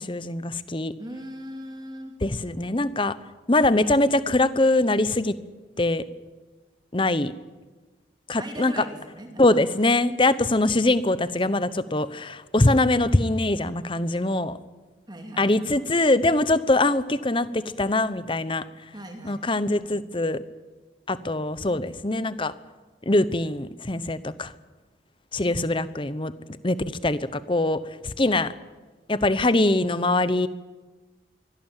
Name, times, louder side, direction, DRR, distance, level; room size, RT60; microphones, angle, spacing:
voice 1, 0.0-0.9 2.2-3.2 3.5-5.3 5.8-6.0 6.9-7.3 8.3-8.8 9.4-14.6 15.4-18.6 19.2-20.4 21.1-22.5 23.1-24.5 25.3-26.3 26.6-26.8 27.0-28.5 29.1-30.5, left 2 dB, 25° left, 15 dB, 0.9 m, -23 dB
voice 2, 1.0-2.1 8.4-9.6 15.1-15.9 18.9-19.4, right 1 dB, 20° right, 4 dB, 2.5 m, -39 dB
23.5 x 17.5 x 9.1 m, 1.3 s
head